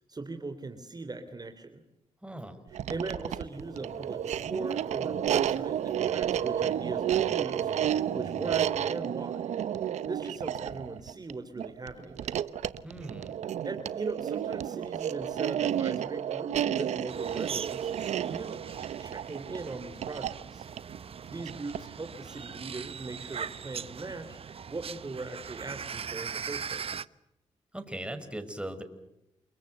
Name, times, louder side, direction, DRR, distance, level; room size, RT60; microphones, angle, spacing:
voice 1, 0.1-1.8 2.7-7.7 8.1-9.5 10.0-12.4 13.6-20.6 21.3-27.0, right 3 dB, 35° right, 7 dB, 3.4 m, -40 dB
voice 2, 2.2-2.6 12.8-13.4 27.7-28.8, right 1 dB, 10° right, 8 dB, 5.6 m, -39 dB
sound 1, 2.7-22.0, right 10 dB, 85° right, 1.0 m, -31 dB
sound 2, 3.5-8.9, left 1 dB, 30° left, 6.0 m, -51 dB
sound 3, 17.1-27.0, right 7 dB, 55° right, 0.9 m, -40 dB
30.0 x 21.5 x 7.9 m, 0.86 s
cardioid pair, 55°, 11 cm